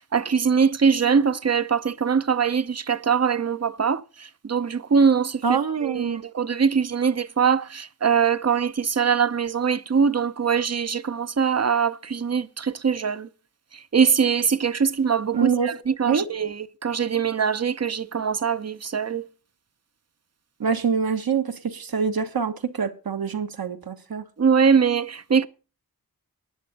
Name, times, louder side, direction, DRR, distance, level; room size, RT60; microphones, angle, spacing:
voice 1, 0.0-4.0 4.4-5.4 5.8-13.3 13.9-19.2 24.4-25.5, right 6 dB, 40° right, 0.7 m, -22 dB
voice 2, 5.4-6.2 15.3-15.8 16.0-16.3 20.6-24.2, right 6 dB, 65° right, 1.4 m, -25 dB
11.0 x 7.6 x 6.7 m
wide cardioid pair, 65°, 38 cm